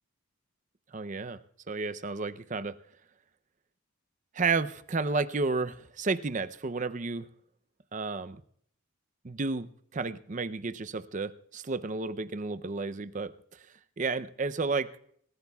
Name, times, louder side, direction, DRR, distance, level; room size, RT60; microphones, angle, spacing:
voice 1, 0.9-1.4 1.7-2.8 4.3-7.3 7.9-8.4 9.2-13.3 14.0-14.9, right 4 dB, 35° right, 12 dB, 0.5 m, -32 dB
26.0 x 15.0 x 2.3 m, 0.66 s
head